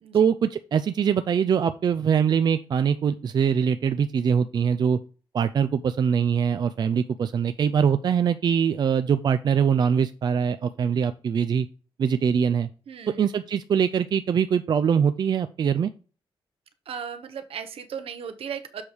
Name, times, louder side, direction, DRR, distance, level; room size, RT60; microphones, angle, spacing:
voice 1, 0.1-5.0 5.3-11.7 12.0-12.7 13.2-15.9, right 7 dB, 45° right, 10 dB, 0.4 m, -23 dB
voice 2, 12.9-13.3 16.9-18.8, right 7 dB, 75° right, 8 dB, 1.0 m, -36 dB
7.2 x 5.0 x 4.6 m, 0.37 s
wide cardioid pair, 175°, 10 cm